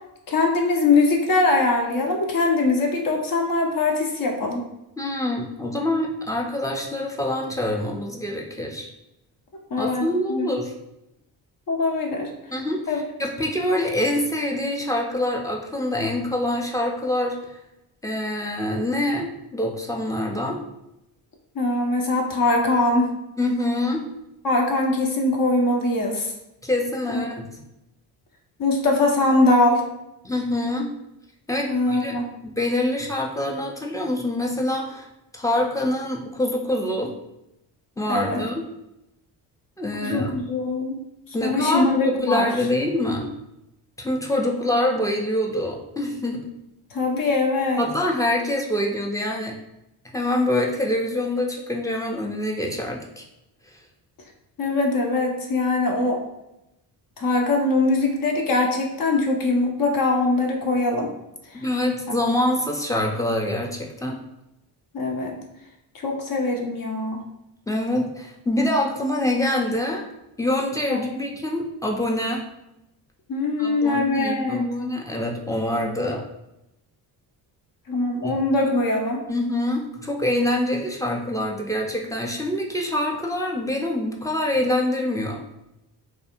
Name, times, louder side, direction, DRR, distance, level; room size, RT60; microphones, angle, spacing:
voice 1, 0.3-4.6 9.7-10.0 10.3-10.5 11.7-12.3 12.9-13.0 21.5-23.1 24.4-26.3 27.1-27.2 28.6-29.8 31.7-32.3 38.1-38.4 40.0-41.0 41.3-42.5 46.9-47.8 54.6-56.2 57.2-61.1 61.5-61.6 62.1-62.2 64.9-65.3 66.0-67.2 70.9-71.0 73.3-74.6 77.9-79.2, left 2 dB, 45° left, 1 dB, 0.7 m, -22 dB
voice 2, 5.0-8.9 9.8-10.7 12.5-17.5 18.0-20.6 23.4-24.0 26.6-27.5 30.2-30.9 31.5-32.2 32.4-35.1 35.3-37.1 38.0-38.6 39.8-40.3 41.3-43.3 44.0-46.5 47.8-49.6 50.1-53.2 61.6-64.2 67.7-70.0 70.4-72.4 73.6-76.2 78.2-78.3 79.3-85.4, left 1 dB, 5° left, 0 dB, 0.4 m, -25 dB
2.4 x 2.3 x 2.9 m, 0.89 s
hypercardioid pair, 50°, 50 cm